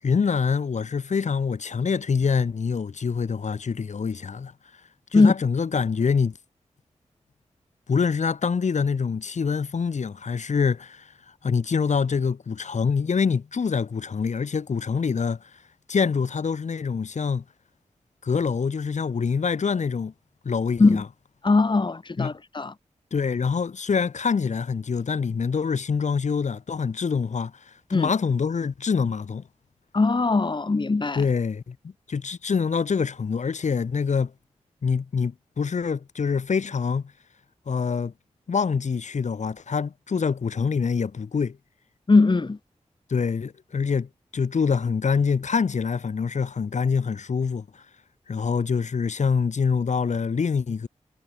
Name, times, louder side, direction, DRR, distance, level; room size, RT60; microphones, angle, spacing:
voice 1, 0.0-4.5 5.1-6.4 7.9-11.1 11.4-15.4 15.9-17.4 18.2-20.1 20.4-21.0 22.2-22.3 23.1-29.4 31.2-34.3 34.8-37.1 37.7-38.1 38.5-41.6 43.1-47.8 48.3-50.9, left 5 dB, 75° left, 7.5 m, -25 dB
voice 2, 21.4-22.7 27.9-28.1 29.9-31.2 42.1-42.6, left 3 dB, 40° left, 4.4 m, -20 dB
wide cardioid pair, 90°, 12 cm